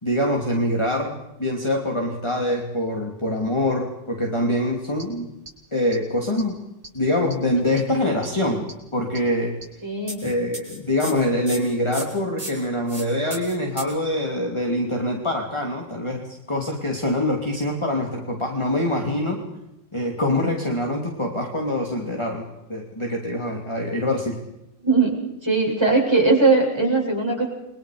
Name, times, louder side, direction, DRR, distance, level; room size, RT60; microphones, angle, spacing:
voice 1, 0.0-5.3 5.7-6.5 6.9-8.7 8.9-9.6 10.2-19.4 19.9-24.4, left 1 dB, 15° left, 0 dB, 3.0 m, -24 dB
sound 1, 5.0-5.1 5.5-5.6 5.9-6.0 6.4-6.5 6.8-6.9 7.3-7.4 7.8-7.9 8.2-8.3 8.7-8.8 9.1-9.2 9.6-9.7 10.1-13.0 13.3-13.9, right 1 dB, 35° right, 7.9 m, -35 dB
voice 2, 9.8-10.3 24.8-25.1 25.4-27.5, right 3 dB, 15° right, -2 dB, 7.7 m, -19 dB
30.0 x 23.5 x 5.1 m, 0.89 s
omnidirectional pair, 1.9 m